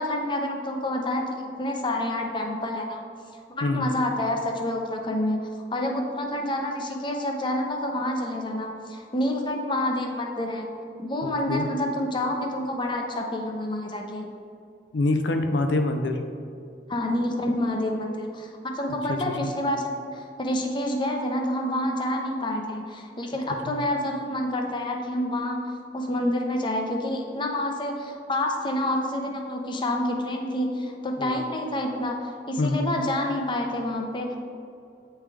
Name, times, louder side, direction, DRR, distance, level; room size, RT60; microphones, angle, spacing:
voice 1, 0.0-3.0 3.6-10.7 11.0-14.4 16.9-34.4, left 1 dB, 25° left, 2 dB, 0.6 m, -28 dB
voice 2, 11.2-11.7 14.9-16.2 19.1-19.5 23.7-23.8 31.2-31.4 32.6-32.9, left 2 dB, 85° left, 6 dB, 0.5 m, -25 dB
8.6 x 3.3 x 3.4 m, 2.5 s
head